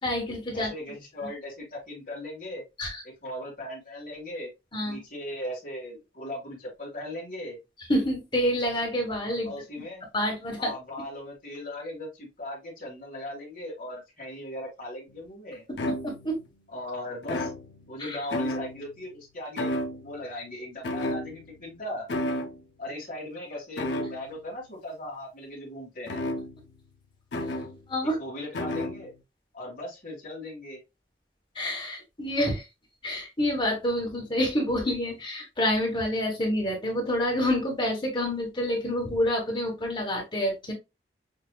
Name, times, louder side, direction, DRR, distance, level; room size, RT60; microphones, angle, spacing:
voice 1, 0.0-0.7 2.8-3.0 4.7-5.0 7.9-9.5 10.1-10.7 16.0-16.4 18.0-18.2 27.9-28.2 31.5-32.6 33.0-40.7, left 1 dB, 25° left, 0 dB, 1.4 m, -27 dB
voice 2, 0.5-2.6 3.0-4.5 4.8-7.6 9.4-10.0 10.6-15.6 16.7-17.5 17.9-22.1 22.8-26.2 28.2-29.1 29.5-30.8, left 1 dB, 50° left, -3 dB, 2.1 m, -38 dB
sound 1, 15.1-15.2 15.8-16.5 17.2-18.0 18.3-19.0 19.6-20.3 20.8-21.7 22.1-22.6 23.8-24.4 26.1-26.8 27.3-27.8 28.5-29.1, left 1 dB, 80° left, 0.6 m, -32 dB
6.6 x 2.3 x 2.2 m, 0.24 s
head